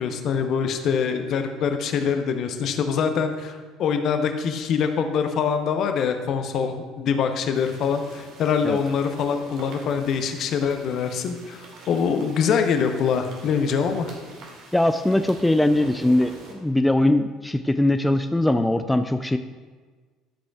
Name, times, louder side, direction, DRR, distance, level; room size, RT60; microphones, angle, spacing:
voice 1, 0.0-14.1, left 6 dB, 50° left, 7 dB, 0.8 m, -24 dB
sound 1, 7.5-16.5, right 2 dB, 55° right, 2.1 m, -44 dB
voice 2, 14.7-16.3 16.6-19.4, left 1 dB, 10° left, 9 dB, 0.4 m, -21 dB
13.0 x 7.5 x 2.4 m, 1.5 s
figure-of-eight pair, 60°, 0 cm